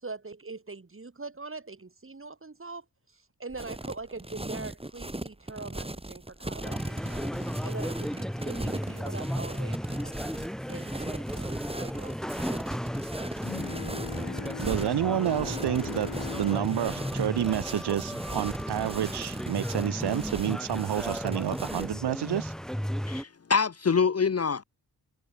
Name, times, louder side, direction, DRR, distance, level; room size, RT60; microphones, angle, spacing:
voice 1, 0.0-2.9 3.1-7.2 7.6-10.2 10.7-12.2, right 3 dB, 30° right, 3.4 m, -42 dB
sound 1, 3.5-22.0, right 1 dB, 15° right, 3.5 m, -38 dB
sound 2, 6.6-23.2, equal, ahead, 3.7 m, -35 dB
Bowed string instrument, 13.4-18.6, left 8 dB, 65° left, 1.2 m, -41 dB
voice 2, 14.6-16.1 16.3-22.5, right 11 dB, 80° right, 0.8 m, -29 dB
voice 3, 23.1-24.6, left 5 dB, 40° left, 0.8 m, -25 dB
wide cardioid pair, 80°, 39 cm